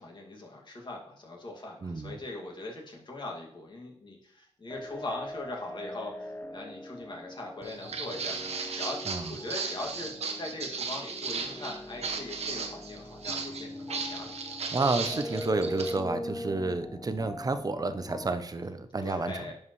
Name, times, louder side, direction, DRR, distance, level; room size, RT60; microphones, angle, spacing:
voice 1, 0.0-9.0 9.3-14.6 19.0-19.5, left 2 dB, 40° left, -1 dB, 2.2 m, -41 dB
voice 2, 1.8-2.2 9.1-9.3 14.7-19.5, right 3 dB, 30° right, 10 dB, 0.7 m, -31 dB
sound 1, 4.7-18.4, left 1 dB, 15° left, 0.6 m, -41 dB
Walk footsteps, 7.6-15.9, right 5 dB, 65° right, 1.0 m, -36 dB
11.0 x 4.8 x 3.2 m, 0.67 s
cardioid pair, 70°, 12 cm